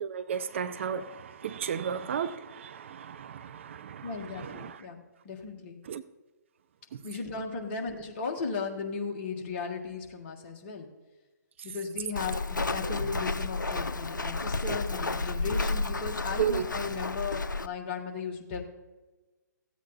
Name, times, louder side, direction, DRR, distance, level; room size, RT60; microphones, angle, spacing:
voice 1, 0.0-4.8 5.8-6.0 6.9-7.0 12.8-12.9 16.4-16.7, right 8 dB, 40° right, 0.5 m, -34 dB
voice 2, 4.0-5.8 7.0-10.9 11.6-18.6, left 4 dB, 35° left, 1.7 m, -36 dB
Walk footsteps, 12.2-17.7, left 3 dB, 80° left, 0.5 m, -32 dB
14.5 x 8.3 x 4.2 m
figure-of-eight pair, 130°, 10 cm